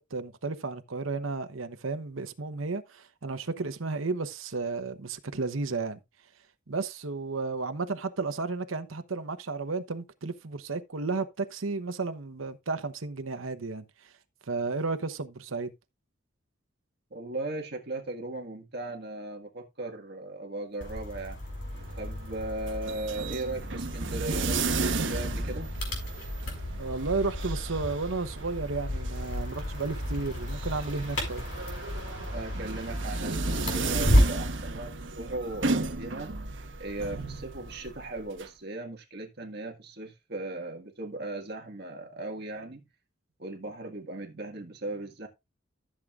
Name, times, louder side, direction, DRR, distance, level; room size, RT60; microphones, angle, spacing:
voice 1, 0.0-6.0 6.7-14.1 14.5-15.7 26.7-31.4, right 3 dB, 90° right, 1.0 m, -33 dB
voice 2, 17.1-21.4 22.0-25.7 32.3-36.3 36.8-42.8 43.4-45.3, right 2 dB, 55° right, 1.7 m, -37 dB
sound 1, 20.8-34.5, equal, 65° left, 5.9 m, -32 dB
sound 2, 21.4-38.5, right 3 dB, 70° right, 1.2 m, -35 dB
14.5 x 7.5 x 2.5 m
head